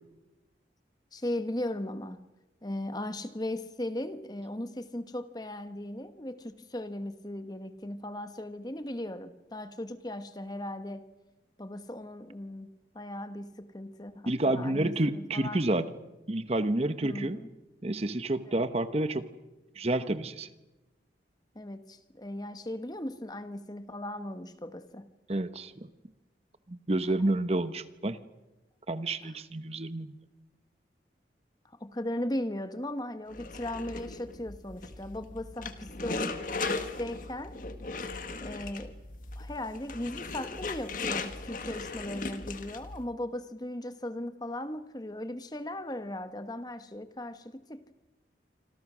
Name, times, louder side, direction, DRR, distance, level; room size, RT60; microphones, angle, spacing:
voice 1, 1.1-2.2 2.6-11.1 11.6-15.6 17.0-17.5 18.5-18.7 21.5-25.1 29.2-29.3 31.6-37.6 38.4-39.0 39.4-47.8, left 1 dB, 20° left, 1.1 m, -37 dB
voice 2, 14.3-15.9 16.3-17.4 17.8-19.2 19.8-20.5 25.3-25.9 26.7-28.2 28.9-30.1, right 1 dB, 35° right, 1.0 m, -29 dB
sound 1, 33.3-43.0, left 3 dB, 50° left, 1.7 m, -38 dB
26.5 x 26.5 x 6.2 m
head